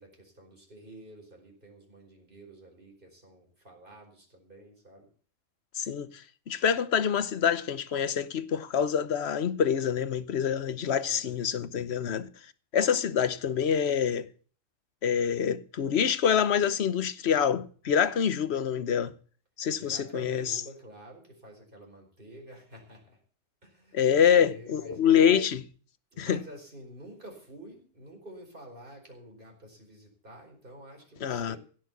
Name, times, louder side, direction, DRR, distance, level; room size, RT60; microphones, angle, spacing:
voice 1, 0.0-5.1 11.0-11.4 19.8-23.2 23.6-25.0 26.1-31.6, equal, 40° right, 4.9 m, -49 dB
voice 2, 5.7-12.3 12.7-14.3 15.0-19.1 19.6-20.6 23.9-25.6 26.2-26.4 31.2-31.6, left 8 dB, 55° left, 1.1 m, -26 dB
16.5 x 6.6 x 8.2 m
omnidirectional pair, 1.4 m